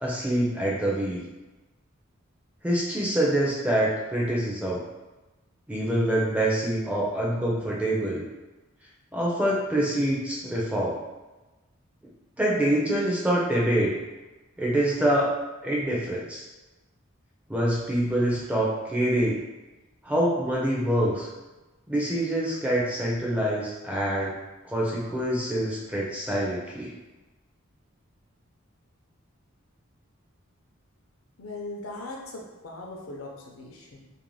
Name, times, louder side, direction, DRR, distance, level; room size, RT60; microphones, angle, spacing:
voice 1, 0.0-1.2 2.6-4.8 5.7-8.2 9.1-11.0 12.4-14.0 14.6-15.4 15.6-16.4 17.5-19.4 20.0-21.3 21.9-24.3 24.6-27.0, right 1 dB, 5° right, -4 dB, 0.4 m, -25 dB
voice 2, 31.4-34.0, left 2 dB, 80° left, 0 dB, 0.5 m, -39 dB
2.5 x 2.1 x 3.1 m, 1.1 s
head